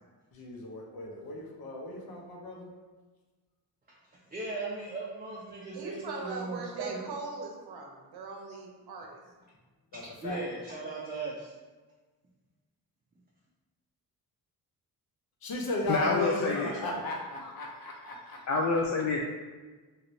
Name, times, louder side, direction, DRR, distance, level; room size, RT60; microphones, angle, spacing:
voice 1, 0.3-2.7 9.9-10.4 15.4-18.4, left 2 dB, 65° left, 0 dB, 0.8 m, -35 dB
voice 2, 4.3-7.0 10.2-11.5, right 3 dB, 25° right, -5 dB, 0.5 m, -37 dB
voice 3, 5.7-9.2, right 4 dB, 70° right, 1 dB, 0.7 m, -40 dB
voice 4, 15.9-17.0 18.5-19.2, left 3 dB, 45° left, -1 dB, 0.4 m, -28 dB
2.9 x 2.5 x 3.0 m, 1.3 s
cardioid pair, 80°, 40 cm